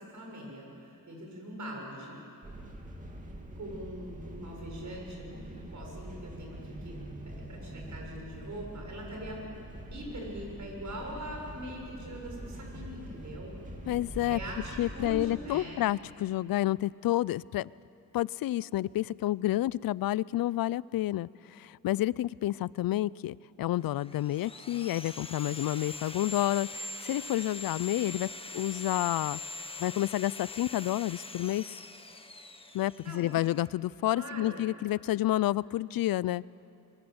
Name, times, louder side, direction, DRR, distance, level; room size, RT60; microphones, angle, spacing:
voice 1, 0.0-2.2 3.5-7.0 7.3-9.4 9.9-13.6 14.3-15.8 32.7-32.8 33.0-33.3 34.1-34.6, right 1 dB, 55° right, 0 dB, 6.9 m, -42 dB
sound 1, 2.4-15.3, right 1 dB, 20° right, 2.7 m, -44 dB
voice 2, 13.9-14.4 14.8-17.7 18.1-28.3 28.5-29.4 29.8-31.7 32.7-36.4, left 15 dB, 75° left, 22 dB, 0.5 m, -30 dB
Sawing, 23.8-33.7, left 3 dB, 15° left, 1.2 m, -42 dB
25.0 x 22.5 x 8.0 m, 2.8 s
wide cardioid pair, 115°, 35 cm